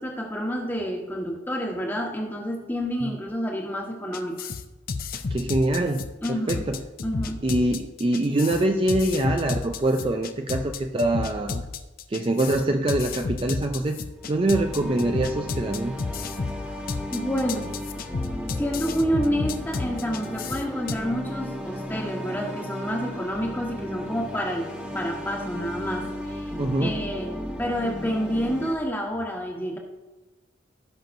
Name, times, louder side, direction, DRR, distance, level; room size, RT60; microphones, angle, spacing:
voice 1, 0.0-4.4 6.2-6.6 7.0-7.4 17.1-18.1 18.6-24.7 24.9-26.5 26.8-27.3 27.6-29.8, equal, 10° left, 0 dB, 1.3 m, -29 dB
sound 1, 4.1-21.0, left 4 dB, 50° left, 0.5 m, -32 dB
voice 2, 5.1-6.8 7.4-11.7 12.1-14.0 14.3-16.0 26.6-27.0, right 1 dB, 30° right, 4 dB, 0.4 m, -24 dB
sound 2, 14.2-28.7, left 1 dB, 5° right, 1.0 m, -35 dB
17.0 x 5.9 x 2.6 m, 1.1 s
head